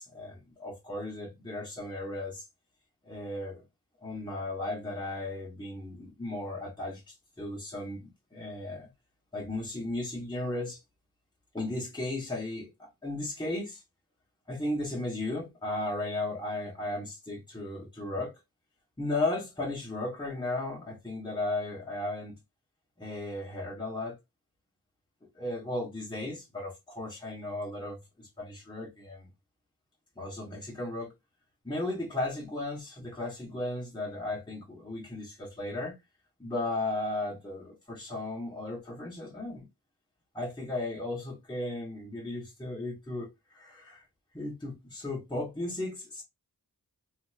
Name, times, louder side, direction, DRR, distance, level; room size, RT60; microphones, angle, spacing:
voice 1, 0.0-2.5 3.0-3.6 4.0-8.9 9.3-10.8 11.5-13.8 14.5-18.3 19.0-22.3 23.0-24.2 25.3-29.3 30.2-31.1 31.6-36.0 36.4-39.7 40.3-44.0 44.3-46.2, left 2 dB, 10° left, 1.1 m, -35 dB
3.4 x 2.9 x 2.3 m
wide cardioid pair, 55°, 37 cm